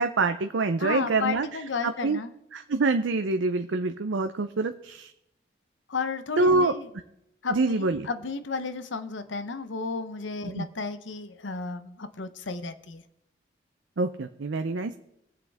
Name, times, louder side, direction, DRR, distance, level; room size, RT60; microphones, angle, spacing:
voice 1, 0.0-1.5 1.8-2.2 2.5-5.1 6.4-6.7 7.5-8.1 10.5-10.7 14.0-14.9, right 3 dB, 85° right, 8 dB, 0.6 m, -25 dB
voice 2, 0.8-2.3 5.9-6.9 7.4-13.0, left 4 dB, 85° left, 11 dB, 0.8 m, -33 dB
22.5 x 7.8 x 3.5 m, 0.84 s
head